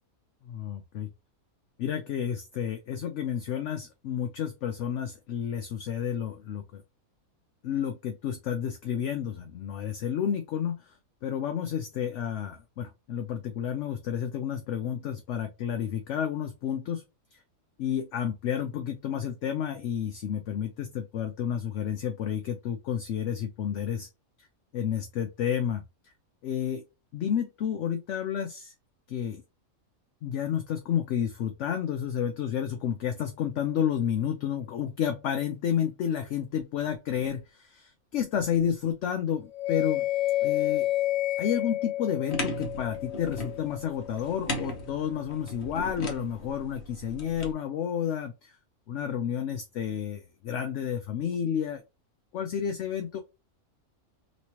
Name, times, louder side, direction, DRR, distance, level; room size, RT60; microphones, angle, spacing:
voice 1, 0.5-1.1 1.8-6.8 7.6-10.9 11.2-17.0 17.8-24.1 24.7-25.8 26.4-26.8 27.1-28.7 29.1-29.4 30.2-40.1 40.4-40.9 41.4-48.5 48.9-51.8 52.3-53.2, left 9 dB, 65° left, 0.8 m, -31 dB
sound 1, 39.5-44.6, left 14 dB, 85° left, 0.3 m, -30 dB
sound 2, 42.3-47.5, equal, 50° left, 1.2 m, -37 dB
3.1 x 3.0 x 2.8 m
omnidirectional pair, 1.5 m